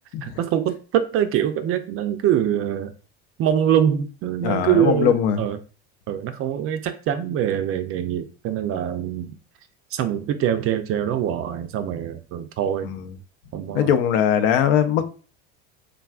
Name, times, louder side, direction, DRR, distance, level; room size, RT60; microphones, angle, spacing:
voice 1, 0.2-2.9 3.4-5.6 6.1-9.4 9.9-12.9 13.5-13.9 15.0-15.1, right 10 dB, 40° right, 0.4 m, -24 dB
voice 2, 4.4-5.4 12.8-13.0 13.7-15.0, left 8 dB, 70° left, 0.6 m, -20 dB
3.4 x 2.3 x 2.3 m
supercardioid pair, 100°, 35 cm